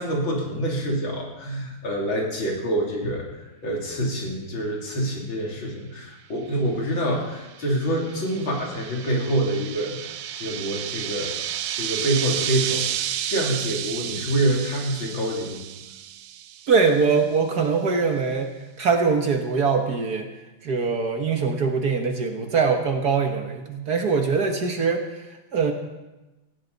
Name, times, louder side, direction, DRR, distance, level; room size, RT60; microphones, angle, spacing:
voice 1, 0.0-3.2 3.6-11.3 11.7-15.7, right 1 dB, 65° left, -2 dB, 3.8 m, -26 dB
sound 1, 7.2-17.0, right 11 dB, 85° right, 1.5 m, -32 dB
voice 2, 16.7-18.5 18.8-20.3 20.6-25.2 25.5-25.7, right 5 dB, 55° right, 4 dB, 1.6 m, -22 dB
18.5 x 14.5 x 4.0 m, 1.1 s
omnidirectional pair, 2.3 m